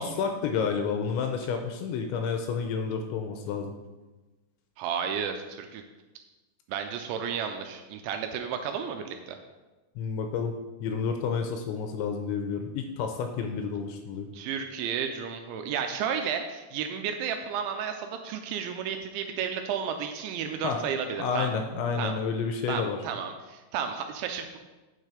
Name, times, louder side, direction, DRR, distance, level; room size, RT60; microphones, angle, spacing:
voice 1, 0.0-3.7 10.0-10.5 10.8-14.3 20.6-20.8 21.2-23.0, left 6 dB, 85° left, 5 dB, 2.8 m, -30 dB
voice 2, 4.8-5.8 6.7-9.4 14.3-21.5 22.0-22.1 22.7-24.6, right 7 dB, 80° right, 6 dB, 2.8 m, -32 dB
8.9 x 6.4 x 5.0 m, 1.2 s
omnidirectional pair, 5.6 m